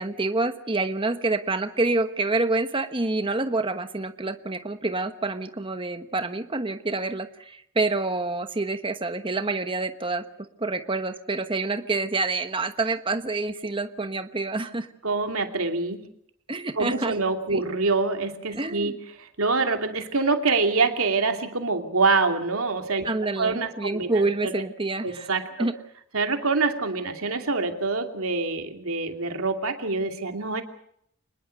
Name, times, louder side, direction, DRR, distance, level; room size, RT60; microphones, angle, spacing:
voice 1, 0.0-10.2 10.6-14.9 16.5-17.1 17.5-17.6 18.5-19.0 23.0-25.3 25.6-25.7, right 3 dB, 25° right, 8 dB, 1.2 m, -27 dB
voice 2, 15.0-16.1 16.8-24.6 25.0-25.7 26.1-30.6, right 3 dB, 75° right, 5 dB, 2.7 m, -26 dB
25.0 x 20.5 x 6.5 m, 0.71 s
head